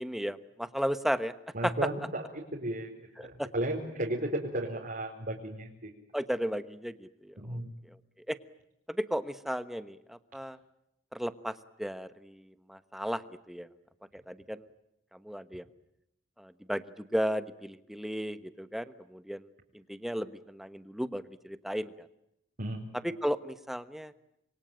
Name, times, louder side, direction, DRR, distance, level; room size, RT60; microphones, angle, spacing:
voice 1, 0.0-1.3 1.6-1.7 3.2-3.5 6.1-7.3 8.3-8.4 8.9-10.6 11.1-12.4 12.7-13.2 13.5-13.7 14.1-14.6 15.2-15.6 16.4-16.8 17.1-19.5 19.9-22.1 23.0-24.1, equal, ahead, 12 dB, 1.1 m, -34 dB
voice 2, 1.5-2.9 3.2-5.9 7.4-7.7 22.6-22.8, right 1 dB, 50° right, -1 dB, 4.3 m, -34 dB
27.5 x 23.0 x 9.0 m, 0.82 s
head